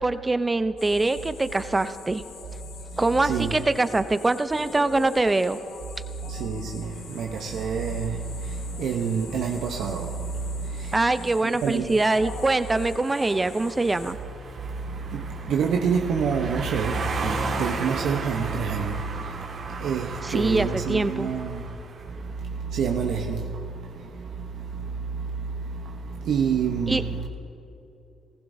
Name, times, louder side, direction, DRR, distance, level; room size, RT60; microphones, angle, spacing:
voice 1, 0.0-2.2 3.0-5.6 10.9-14.2 20.2-21.3 26.9-27.0, right 2 dB, 20° right, 0.5 m, -23 dB
sound 1, 0.8-14.1, left 6 dB, 80° left, 0.9 m, -44 dB
voice 2, 2.9-3.5 6.2-11.9 14.8-21.8 22.1-27.2, right 6 dB, 75° right, 0.8 m, -28 dB
sound 2, 11.9-22.2, right 3 dB, 55° right, 1.8 m, -35 dB
19.0 x 15.0 x 2.7 m
cardioid pair, 90°, 0 cm